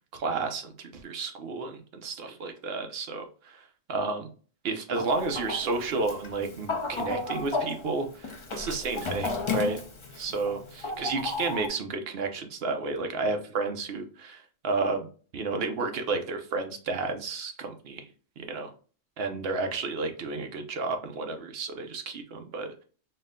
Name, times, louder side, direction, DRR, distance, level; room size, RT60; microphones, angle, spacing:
voice 1, 0.1-4.3 4.6-9.8 10.1-10.6 11.0-15.1 15.3-18.1 18.4-18.7 19.2-22.8, right 3 dB, 55° right, 5 dB, 0.8 m, -31 dB
Chicken rooster, 4.9-11.7, left 3 dB, 40° left, 0.4 m, -34 dB
4.3 x 2.1 x 3.6 m, 0.39 s
omnidirectional pair, 1.3 m